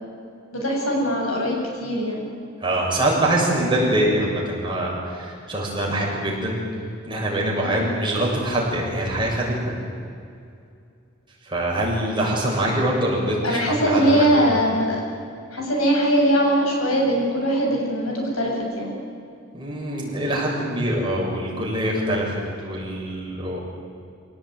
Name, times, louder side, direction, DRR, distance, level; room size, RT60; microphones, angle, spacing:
voice 1, 0.5-2.2 7.5-7.9 13.4-15.0 15.5-18.9, right 1 dB, 90° left, 0 dB, 7.5 m, -21 dB
voice 2, 2.6-6.6 7.1-9.8 11.4-14.3 19.5-23.6, right 1 dB, 25° right, -3 dB, 6.9 m, -24 dB
27.0 x 17.5 x 9.4 m, 2.4 s
head